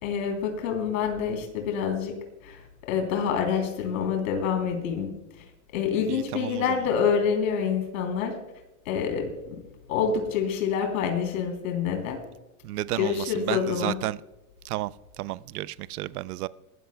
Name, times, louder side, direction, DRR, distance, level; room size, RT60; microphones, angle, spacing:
voice 1, 0.0-2.1 2.4-5.1 5.4-5.5 5.7-8.3 8.8-9.6 9.9-12.2 13.0-14.0, left 7 dB, 65° left, 3.4 m, -27 dB
voice 2, 6.1-6.8 12.6-14.2 14.6-16.5, right 16 dB, 80° right, 0.6 m, -32 dB
20.5 x 13.5 x 2.2 m
supercardioid pair, 160°, 44 cm